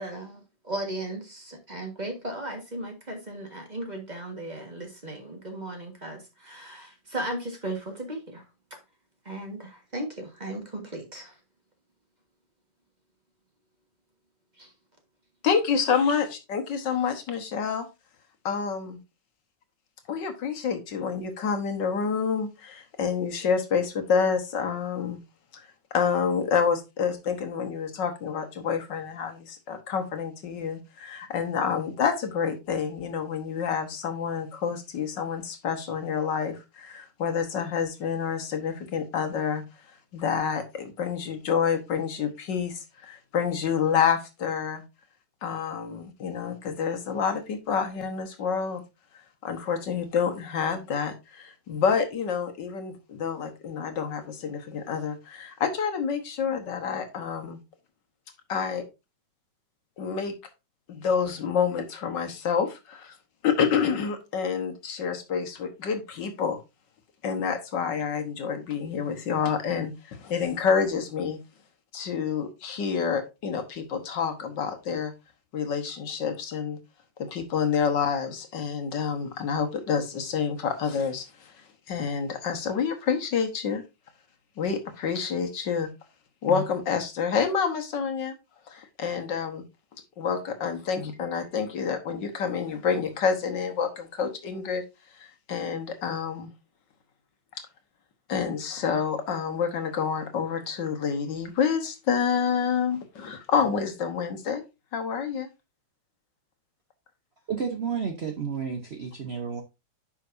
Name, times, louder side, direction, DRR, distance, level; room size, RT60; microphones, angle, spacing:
voice 1, 0.0-8.4 9.2-11.4 14.6-14.7, right 1 dB, 25° right, 1.5 m, -36 dB
voice 2, 15.4-17.9 18.5-19.0 20.1-25.2 25.9-39.6 40.1-44.8 45.4-48.8 49.4-57.6 58.5-58.8 60.0-60.3 60.9-63.1 63.4-66.6 67.2-71.4 71.9-75.1 75.5-76.8 77.2-81.5 81.9-83.8 84.6-85.9 86.4-88.3 88.7-89.7 90.2-94.8 95.2-96.5 98.3-104.6 104.9-105.5, left 6 dB, 70° left, 1.8 m, -28 dB
voice 3, 107.5-109.6, right 6 dB, 45° right, 0.9 m, -31 dB
9.8 x 5.7 x 2.6 m
omnidirectional pair, 2.0 m